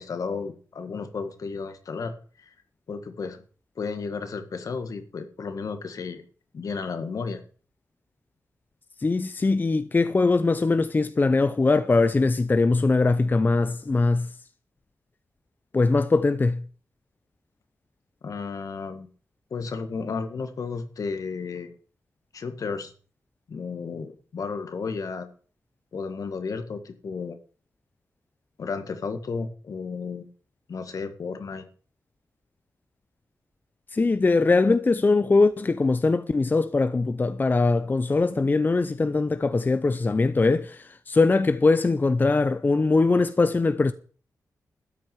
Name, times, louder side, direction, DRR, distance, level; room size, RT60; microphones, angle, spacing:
voice 1, 0.0-2.5 2.9-3.4 3.7-6.2 6.5-7.4 18.2-19.1 19.5-21.8 22.3-22.9 23.5-25.3 25.9-27.4 28.6-30.3 30.7-31.6, left 5 dB, 65° left, 1.7 m, -33 dB
voice 2, 9.0-14.3 15.7-16.6 33.9-43.9, left 3 dB, 30° left, 0.6 m, -21 dB
13.0 x 6.1 x 9.2 m
cardioid pair, 85°, 6 cm